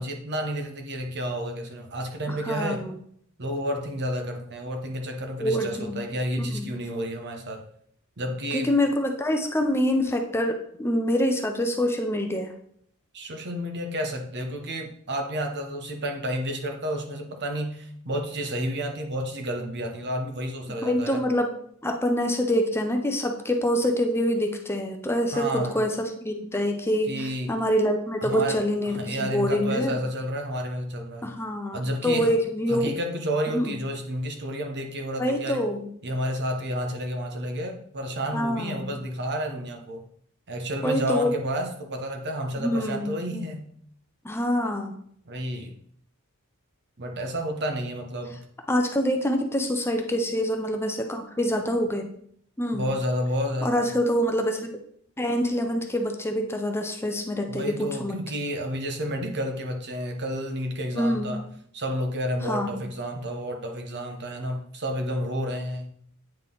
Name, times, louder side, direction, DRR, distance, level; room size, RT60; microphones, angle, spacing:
voice 1, 0.0-2.9 3.4-7.6 8.2-8.7 13.1-21.3 25.3-25.8 27.1-27.6 28.2-31.4 31.7-32.3 32.7-35.6 36.0-40.0 40.5-43.7 45.2-45.8 47.0-48.4 52.7-54.0 57.5-61.4 61.7-65.9, equal, 55° right, 3 dB, 1.0 m, -30 dB
voice 2, 2.3-2.9 5.4-6.0 6.4-6.7 8.5-12.5 20.8-21.5 21.8-30.0 31.2-32.9 33.5-33.8 35.2-35.9 38.3-38.9 40.8-41.3 42.6-43.2 44.2-45.0 48.7-52.1 52.6-52.9 53.6-54.7 55.2-58.1 61.0-61.4 62.4-62.8, equal, 10° left, 4 dB, 0.6 m, -26 dB
9.0 x 3.9 x 3.8 m, 0.65 s
head